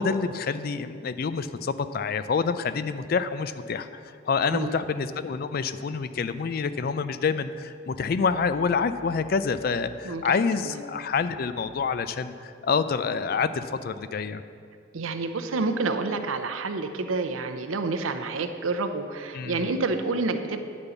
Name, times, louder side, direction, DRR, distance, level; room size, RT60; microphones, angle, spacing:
voice 1, 0.0-14.4 19.3-19.7, left 5 dB, 50° left, 12 dB, 0.3 m, -27 dB
voice 2, 14.9-20.6, right 3 dB, 90° right, 7 dB, 0.6 m, -28 dB
9.9 x 5.2 x 6.9 m, 2.3 s
head